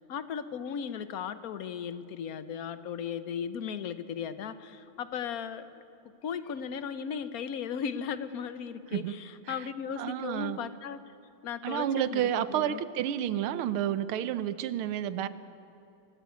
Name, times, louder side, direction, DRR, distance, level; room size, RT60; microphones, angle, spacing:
voice 1, 0.1-5.7 6.2-11.1 11.4-12.8, left 7 dB, 55° left, 12 dB, 1.1 m, -36 dB
voice 2, 10.0-10.6 11.6-15.3, right 11 dB, 85° right, 14 dB, 1.7 m, -30 dB
24.5 x 14.0 x 9.3 m, 2.8 s
omnidirectional pair, 2.3 m